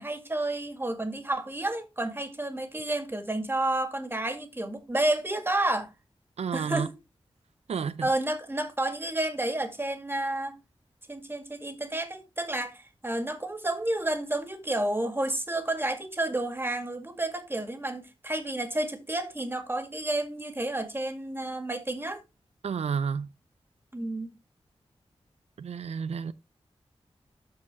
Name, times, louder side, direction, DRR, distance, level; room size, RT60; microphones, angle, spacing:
voice 1, 0.0-5.9 6.5-6.9 8.0-10.6 11.1-22.2 23.9-24.3, right 1 dB, 20° right, 2.0 m, -30 dB
voice 2, 6.4-6.9 7.7-8.1 22.6-23.3 25.6-26.3, right 6 dB, 85° right, 0.4 m, -30 dB
13.0 x 4.5 x 3.6 m
wide cardioid pair, 75°, 11 cm